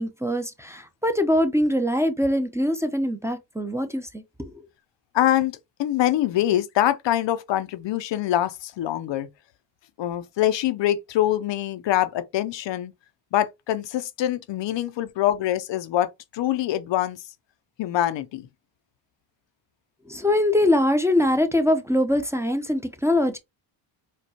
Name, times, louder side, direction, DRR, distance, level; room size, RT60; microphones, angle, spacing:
voice 1, 0.0-4.5 20.1-23.4, left 1 dB, 5° right, 0.6 m, -23 dB
voice 2, 5.1-9.3 10.0-12.9 13.3-17.2 17.8-18.5, left 12 dB, 60° left, 0.6 m, -24 dB
4.4 x 2.3 x 2.8 m
cardioid pair, 75°, 49 cm